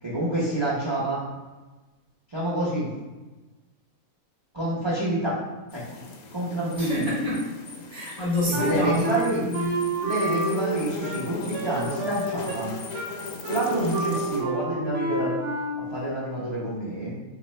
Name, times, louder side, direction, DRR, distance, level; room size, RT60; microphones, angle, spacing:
voice 1, 0.0-1.2 2.3-2.9 4.5-5.4 5.7-6.0 6.3-7.0 8.5-9.4 10.0-12.7 13.5-15.3 15.7-17.1, right 1 dB, 35° right, -7 dB, 0.4 m, -28 dB
sound 1, 5.7-14.4, left 4 dB, 80° left, 1.0 m, -38 dB
voice 2, 6.7-7.4 7.9-9.7 13.8-14.0, left 2 dB, 40° left, -8 dB, 0.5 m, -28 dB
Wind instrument woodwind instrument, 8.5-16.0, right 2 dB, 65° right, 0.8 m, -30 dB
3.5 x 2.5 x 3.1 m, 1.2 s
omnidirectional pair, 1.6 m